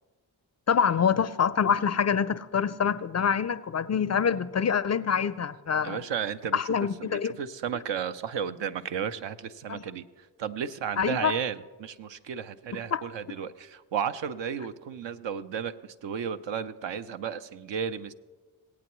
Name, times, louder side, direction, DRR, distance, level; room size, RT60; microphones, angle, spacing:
voice 1, 0.7-6.0 6.5-7.3 9.7-9.8 11.0-11.3 12.9-13.0, left 7 dB, 35° left, 14 dB, 0.4 m, -25 dB
voice 2, 5.8-6.7 7.0-18.1, right 7 dB, 65° right, 11 dB, 0.7 m, -33 dB
18.5 x 8.5 x 3.1 m, 1.3 s
supercardioid pair, 40°, 47 cm